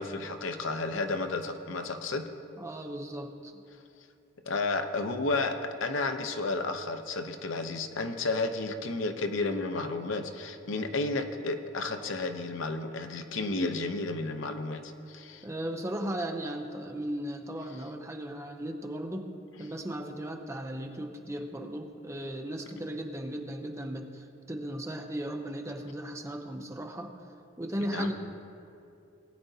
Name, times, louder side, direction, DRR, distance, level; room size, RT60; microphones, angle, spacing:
voice 1, 0.0-2.3 4.4-15.5 27.8-28.1, left 3 dB, 80° left, 7 dB, 0.7 m, -32 dB
voice 2, 2.6-3.6 15.4-19.3 19.6-27.1 27.6-28.1, right 1 dB, 15° right, 3 dB, 0.7 m, -36 dB
19.0 x 9.1 x 2.7 m, 2.6 s
head